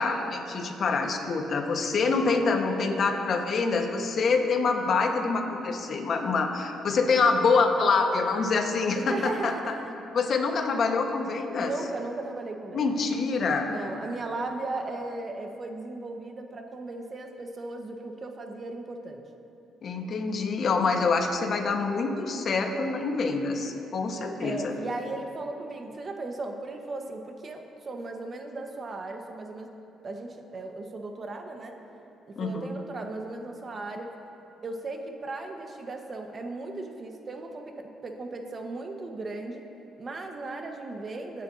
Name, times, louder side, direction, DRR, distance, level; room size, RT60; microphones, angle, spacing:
voice 1, 0.0-9.7 10.1-11.7 12.7-13.7 19.8-24.7 32.4-32.7, left 4 dB, 55° left, 3 dB, 1.4 m, -26 dB
voice 2, 8.9-9.9 11.6-12.9 13.6-19.2 24.4-29.7 30.0-31.8 32.3-34.1 34.6-39.6 40.0-41.4, right 2 dB, 40° right, 4 dB, 1.3 m, -36 dB
22.0 x 9.6 x 2.8 m, 2.9 s
cardioid pair, 85°, 0 cm